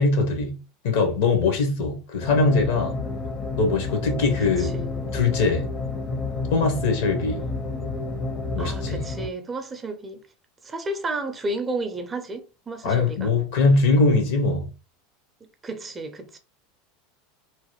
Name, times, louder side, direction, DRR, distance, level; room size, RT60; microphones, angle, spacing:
voice 1, 0.0-3.0 3.6-4.8 5.1-5.7 6.5-7.4 8.5-9.0 12.8-14.7, left 3 dB, 75° left, 1.0 m, -22 dB
sound 1, 2.2-9.3, left 3 dB, 35° left, 0.6 m, -30 dB
voice 2, 4.4-5.2 8.6-10.2 10.6-13.3 15.6-16.4, right 2 dB, 25° right, 0.5 m, -32 dB
3.0 x 2.1 x 3.1 m
hypercardioid pair, 100°, 0 cm